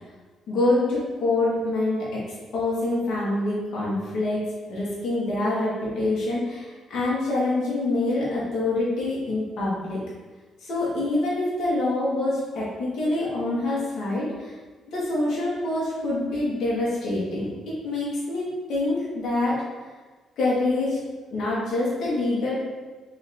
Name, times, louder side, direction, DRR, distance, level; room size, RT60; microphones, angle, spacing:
voice 1, 0.5-2.2 2.5-4.4 4.7-10.0 10.6-14.5 14.9-19.6 20.4-21.0 21.3-22.6, left 2 dB, 70° left, -6 dB, 1.3 m, -26 dB
3.3 x 2.8 x 4.1 m, 1.3 s
cardioid pair, 90°, 0 cm